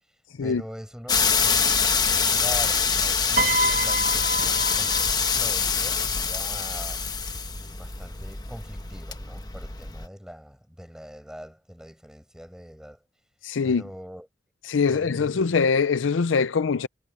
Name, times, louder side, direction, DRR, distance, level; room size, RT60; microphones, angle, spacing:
voice 1, 0.1-1.9 2.3-7.1 7.7-13.0 13.6-14.3 14.9-15.4, equal, 5° right, 6.8 m, -42 dB
sound 1, 1.1-10.1, left 5 dB, 20° left, 1.1 m, -25 dB
Piano, 3.4-5.7 6.8-7.0, right 2 dB, 40° right, 1.1 m, -28 dB
voice 2, 13.4-13.8 14.7-16.9, left 5 dB, 90° left, 0.5 m, -23 dB
head